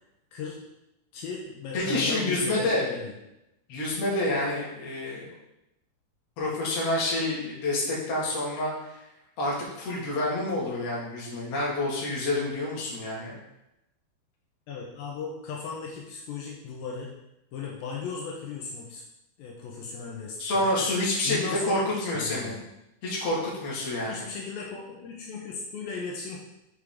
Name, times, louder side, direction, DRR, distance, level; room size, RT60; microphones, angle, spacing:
voice 1, 0.3-0.7 1.1-3.1 14.7-17.1 17.5-19.0 19.4-20.9 21.2-22.6 24.1-26.4, left 5 dB, 80° left, -2 dB, 2.6 m, -37 dB
voice 2, 1.7-2.8 3.7-5.3 6.4-9.0 9.4-13.4 20.4-22.6 23.0-24.3, left 1 dB, 50° left, -5 dB, 2.4 m, -28 dB
6.6 x 5.1 x 3.5 m, 0.88 s
omnidirectional pair, 4.2 m